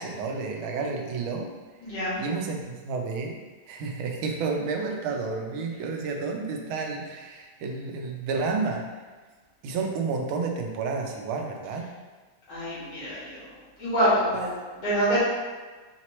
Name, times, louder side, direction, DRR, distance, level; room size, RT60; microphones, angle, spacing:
voice 1, 0.0-1.5 2.2-3.4 3.7-8.9 9.6-11.9, right 4 dB, 85° right, 2 dB, 1.5 m, -30 dB
voice 2, 1.8-2.2 12.5-13.4 13.8-14.5 14.8-15.2, equal, 70° left, -11 dB, 2.5 m, -25 dB
4.9 x 3.0 x 3.0 m, 1.3 s
omnidirectional pair, 2.2 m